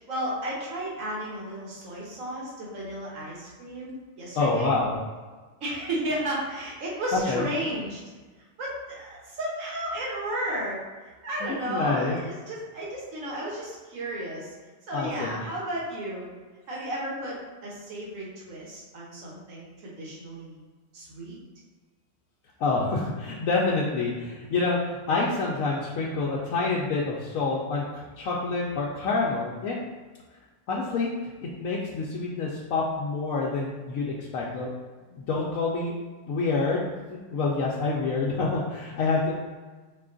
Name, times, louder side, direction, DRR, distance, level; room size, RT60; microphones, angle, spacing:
voice 1, 0.1-3.9 4.2-4.8 5.6-8.0 8.6-10.8 11.2-14.5 14.9-16.3 16.7-17.4 17.6-20.6 20.9-21.4, right 1 dB, 75° right, -5 dB, 1.5 m, -33 dB
voice 2, 4.3-5.0 7.1-7.5 11.4-12.2 14.9-15.4 22.6-29.8 30.7-31.1 31.4-34.7 35.1-35.9 36.3-39.3, left 3 dB, 85° left, -4 dB, 1.0 m, -27 dB
4.9 x 2.3 x 3.7 m, 1.3 s
omnidirectional pair, 1.4 m